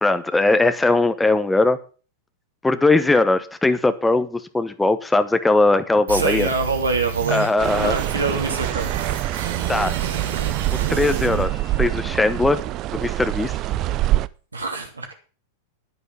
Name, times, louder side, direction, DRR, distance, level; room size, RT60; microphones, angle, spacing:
voice 1, 0.0-1.8 2.6-6.5 7.3-7.9 9.7-9.9 10.7-12.6 12.9-13.6, left 2 dB, 10° left, 10 dB, 1.0 m, -19 dB
sound 1, 6.1-12.1, right 8 dB, 65° right, 2.1 m, -30 dB
voice 2, 6.1-7.5 7.7-8.9 14.5-15.1, right 3 dB, 85° right, 3 dB, 2.9 m, -25 dB
sound 2, 7.6-14.3, right 15 dB, 40° right, 0.6 m, -25 dB
10.5 x 9.4 x 7.1 m, 0.38 s
figure-of-eight pair, 95°, 0 cm